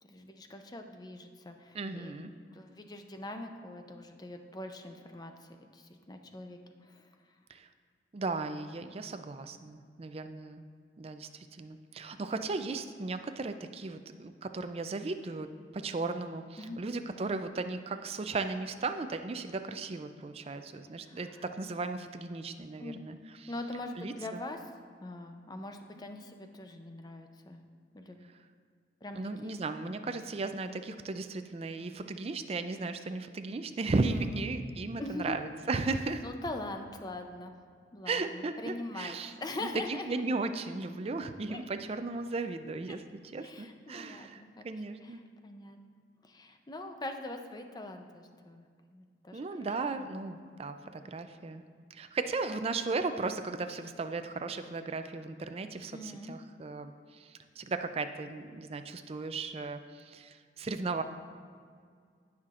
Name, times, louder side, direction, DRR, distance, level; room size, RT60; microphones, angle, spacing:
voice 1, 0.0-2.1 2.5-7.1 16.6-16.8 21.0-21.4 22.8-23.1 23.5-24.7 25.0-27.6 27.9-28.3 29.0-29.5 34.0-34.5 35.0-35.4 36.2-37.6 37.9-40.2 41.5-41.6 42.9-43.0 43.4-44.6 45.0-45.8 46.2-50.1 55.9-56.4, left 2 dB, 20° left, 5 dB, 0.5 m, -43 dB
voice 2, 1.7-2.3 7.5-7.7 8.1-10.6 11.0-15.5 15.7-23.5 24.0-24.4 29.1-36.2 38.1-39.3 39.6-39.7 40.1-43.0 43.3-45.2 49.3-51.6 51.9-61.0, right 3 dB, 35° right, 9 dB, 0.4 m, -36 dB
16.0 x 5.8 x 2.5 m, 2.1 s
head